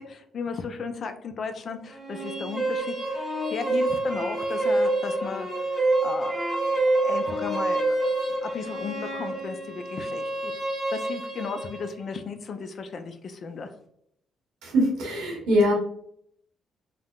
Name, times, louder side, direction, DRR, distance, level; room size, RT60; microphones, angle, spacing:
voice 1, 0.0-5.5 5.8-6.4 7.0-8.1 8.4-10.5 10.9-13.7, left 5 dB, 55° left, 7 dB, 0.4 m, -35 dB
sound 1, 1.9-11.9, right 2 dB, ahead, 1.0 m, -27 dB
voice 2, 14.6-15.7, equal, 85° right, -2 dB, 1.2 m, -22 dB
3.4 x 2.1 x 2.3 m, 0.70 s
cardioid pair, 90°, 0 cm